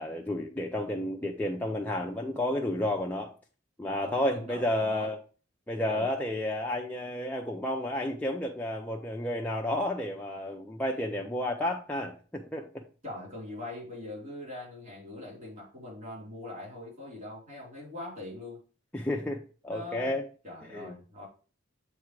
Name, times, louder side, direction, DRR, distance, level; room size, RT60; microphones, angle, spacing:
voice 1, 0.0-3.3 3.8-5.2 5.7-12.8 18.9-20.2 20.7-20.9, left 1 dB, 10° left, 0.6 m, -31 dB
voice 2, 4.0-5.1 5.9-6.1 13.0-18.6 19.7-20.2 20.4-21.3, left 2 dB, 45° right, 3.7 m, -42 dB
7.3 x 3.6 x 4.7 m
head